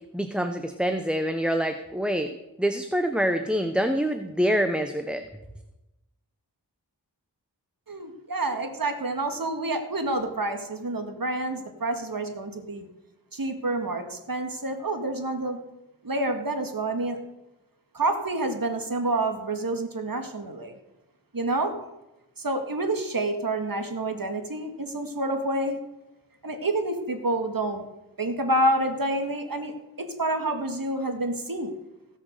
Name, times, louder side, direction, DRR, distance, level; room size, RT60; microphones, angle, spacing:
voice 1, 0.1-2.3 2.6-5.2, equal, ahead, 7 dB, 0.9 m, -26 dB
voice 2, 7.9-12.9 13.3-15.6 16.0-17.2 17.9-20.7 21.3-21.7 22.4-25.8 26.4-27.8 28.2-29.7 30.0-31.7, right 2 dB, 55° right, 6 dB, 2.1 m, -28 dB
17.5 x 6.5 x 6.7 m, 0.95 s
wide cardioid pair, 55°, 40 cm